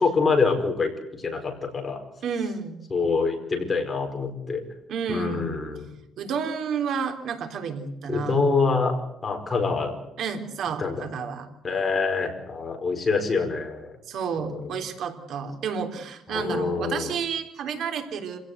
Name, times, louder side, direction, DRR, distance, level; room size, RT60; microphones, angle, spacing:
voice 1, 0.0-2.0 2.9-4.6 5.1-5.9 8.1-8.9 9.2-10.0 10.8-11.1 11.6-13.9 14.5-14.7 16.3-17.1, left 4 dB, 20° left, 3 dB, 4.9 m, -25 dB
voice 2, 2.2-2.8 4.9-5.5 6.2-8.4 10.2-11.5 14.1-18.4, right 6 dB, 60° right, 6 dB, 3.6 m, -30 dB
26.5 x 17.5 x 8.1 m, 0.82 s
cardioid pair, 145°, 0 cm